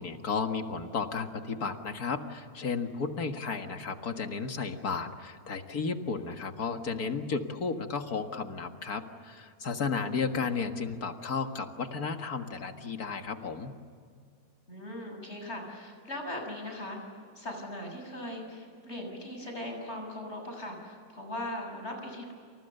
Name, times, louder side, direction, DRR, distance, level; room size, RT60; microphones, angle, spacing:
voice 1, 0.0-13.8, left 5 dB, 75° left, 6 dB, 2.2 m, -33 dB
voice 2, 9.9-10.2 14.7-17.0 17.4-22.3, left 1 dB, 45° left, 2 dB, 7.0 m, -39 dB
29.0 x 29.0 x 6.8 m, 2.2 s
omnidirectional pair, 1.6 m